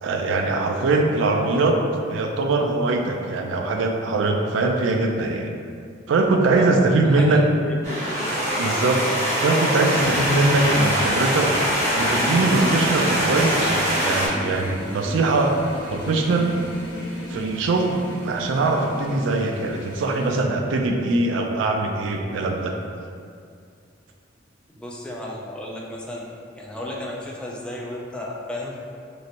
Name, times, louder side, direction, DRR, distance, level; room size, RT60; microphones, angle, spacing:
voice 1, 0.0-1.8 2.1-5.5 6.1-7.4 8.6-9.0 9.4-11.5 12.0-15.6 15.9-16.5 17.3-18.0 18.2-22.7, right 2 dB, 75° right, 2 dB, 0.3 m, -22 dB
voice 2, 6.5-8.4 24.7-28.8, left 1 dB, 5° left, -4 dB, 0.3 m, -33 dB
sound 1, 7.8-14.3, equal, 40° right, 0.9 m, -23 dB
sound 2, 9.9-20.4, left 1 dB, 80° left, 0.6 m, -36 dB
3.1 x 2.8 x 2.5 m, 2.3 s
head